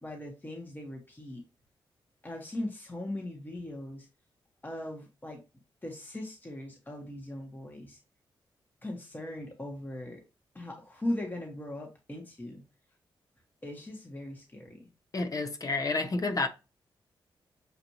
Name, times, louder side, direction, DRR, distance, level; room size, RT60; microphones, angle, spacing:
voice 1, 0.0-1.4 2.2-4.1 4.6-5.4 5.8-8.0 8.8-10.2 10.5-12.6 13.6-14.9, left 1 dB, 20° left, 1.3 m, -39 dB
voice 2, 15.1-16.5, left 3 dB, 40° left, 0.9 m, -30 dB
6.7 x 2.6 x 3.0 m
cardioid pair, 65°, 9 cm